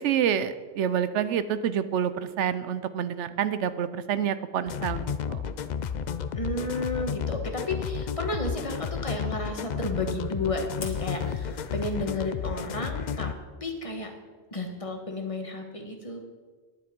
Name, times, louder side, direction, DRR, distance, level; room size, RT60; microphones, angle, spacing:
voice 1, 0.0-5.4, right 9 dB, 85° right, 14 dB, 0.9 m, -28 dB
sound 1, 4.7-13.3, left 7 dB, 55° left, 0.5 m, -32 dB
voice 2, 6.3-13.3 13.6-14.1 14.5-16.2, left 2 dB, 30° left, 3 dB, 1.4 m, -32 dB
Fire, 10.8-11.9, left 3 dB, 75° left, 1.9 m, -45 dB
10.0 x 9.7 x 5.2 m, 1.4 s
omnidirectional pair, 1.2 m